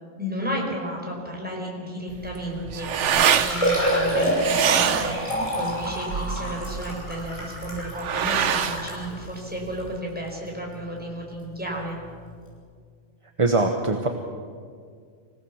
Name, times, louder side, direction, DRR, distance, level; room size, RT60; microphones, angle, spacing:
voice 1, 0.2-12.0, equal, 5° right, -1 dB, 4.9 m, -33 dB
sound 1, 2.1-10.0, right 8 dB, 70° right, 1.1 m, -26 dB
Liquid, 2.7-2.8 3.1-9.0 9.7-9.8 10.3-10.4 12.0-12.1 12.3-12.4, equal, 25° left, 6.5 m, -27 dB
voice 2, 13.4-14.1, right 3 dB, 25° right, 4 dB, 1.1 m, -21 dB
25.5 x 17.5 x 7.3 m, 2.1 s
omnidirectional pair, 1.3 m